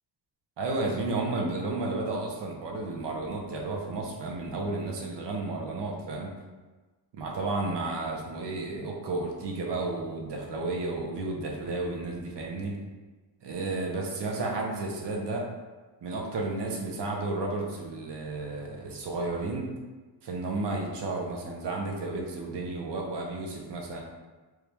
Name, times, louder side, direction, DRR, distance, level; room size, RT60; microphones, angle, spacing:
voice 1, 0.6-6.3 7.1-12.8 13.4-15.5 16.0-19.7 20.2-24.0, right 2 dB, 70° right, 0 dB, 0.8 m, -32 dB
3.1 x 2.4 x 3.3 m, 1.3 s
cardioid pair, 90°, 43 cm